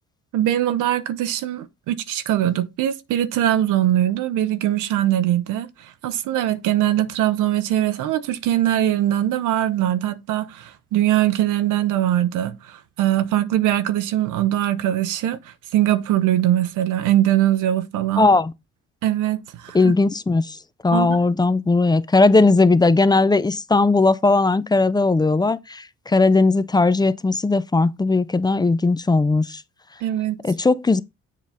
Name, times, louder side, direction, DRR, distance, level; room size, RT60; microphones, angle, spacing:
voice 1, 0.3-18.3 19.0-19.9 20.9-21.3 30.0-30.4, right 12 dB, 90° right, 0.7 m, -21 dB
voice 2, 18.2-18.5 19.7-20.6 20.8-29.6 30.4-31.0, left 3 dB, 15° left, 0.5 m, -18 dB
7.4 x 3.8 x 5.5 m
cardioid pair, 90°, 30 cm